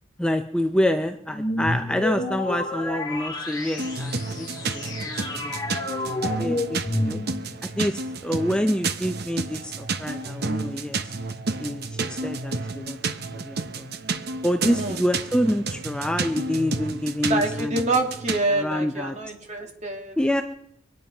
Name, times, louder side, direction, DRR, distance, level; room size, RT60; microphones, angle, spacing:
voice 1, 0.2-4.9 5.3-7.2 7.6-11.1 11.6-13.0 13.3-13.9 14.4-17.8 18.5-19.2 20.2-20.4, equal, 5° left, 6 dB, 0.5 m, -27 dB
sound 1, 1.3-7.6, left 1 dB, 20° left, 2.1 m, -30 dB
sound 2, 3.8-18.4, right 3 dB, 55° right, 0.9 m, -31 dB
voice 2, 17.2-20.2, right 2 dB, 35° right, 2 dB, 2.4 m, -26 dB
24.0 x 9.4 x 5.4 m, 0.72 s
head